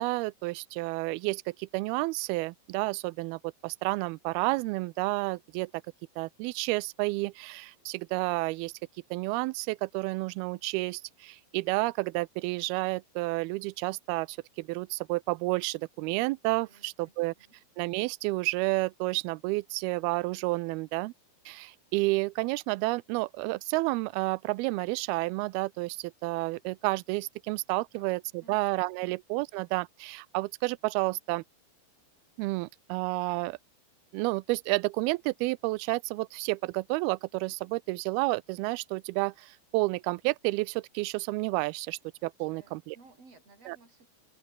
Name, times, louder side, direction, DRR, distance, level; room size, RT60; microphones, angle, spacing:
voice 1, 0.0-5.7 6.2-8.7 9.1-17.3 17.8-21.1 21.5-31.4 32.4-33.6 34.1-43.0 43.7-43.8, right 23 dB, 85° right, 2.2 m, -30 dB
voice 2, 16.7-17.5 27.9-28.6 29.0-29.2 42.4-44.1, right 3 dB, 35° right, 7.5 m, -58 dB
open air
omnidirectional pair, 5.0 m